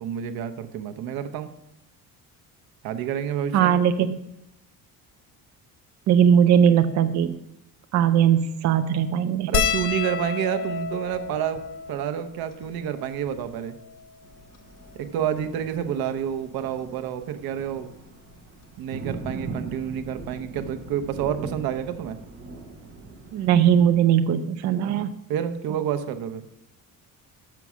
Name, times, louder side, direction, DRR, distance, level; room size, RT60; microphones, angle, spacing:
voice 1, 0.0-1.5 2.8-3.8 9.5-11.6 11.9-13.7 14.9-17.9 18.8-22.2 25.3-26.4, right 9 dB, 85° right, 9 dB, 0.8 m, -29 dB
voice 2, 3.5-4.2 6.1-7.4 7.9-9.5 23.3-25.1, right 8 dB, 50° right, 8 dB, 0.5 m, -19 dB
sound 1, 9.5-14.2 14.9-15.0 15.2-15.4 16.6-16.9 18.3-18.4 18.7-18.8, left 7 dB, 65° left, 0.8 m, -30 dB
Thunder, 14.2-23.9, right 3 dB, 35° right, 1.2 m, -41 dB
6.9 x 6.0 x 6.0 m, 0.81 s
cardioid pair, 175°, 35 cm